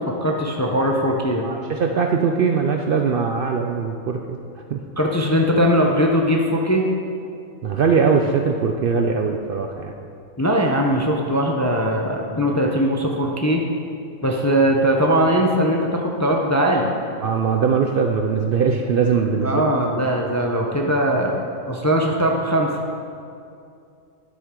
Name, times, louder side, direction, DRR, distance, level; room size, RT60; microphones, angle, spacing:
voice 1, 0.2-1.5 5.0-6.8 10.4-13.6 14.2-16.9 19.4-21.4 21.7-22.7, equal, 20° left, 0 dB, 0.5 m, -20 dB
voice 2, 1.4-4.4 4.7-4.8 7.6-9.9 17.2-19.7, right 5 dB, 60° right, 3 dB, 0.6 m, -21 dB
11.5 x 7.9 x 3.7 m, 2.5 s
omnidirectional pair, 1.3 m